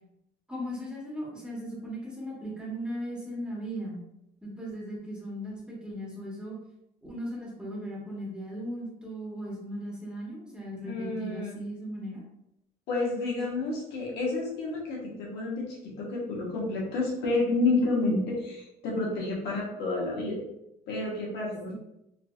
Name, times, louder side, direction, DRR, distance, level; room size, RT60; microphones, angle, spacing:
voice 1, 0.5-4.0 4.4-6.6 7.0-12.2, equal, 5° right, -4 dB, 1.2 m, -37 dB
voice 2, 10.8-11.5 12.9-20.4 20.9-21.7, left 2 dB, 80° left, -3 dB, 1.1 m, -30 dB
3.7 x 2.7 x 2.3 m, 0.84 s
cardioid pair, 110°, 17 cm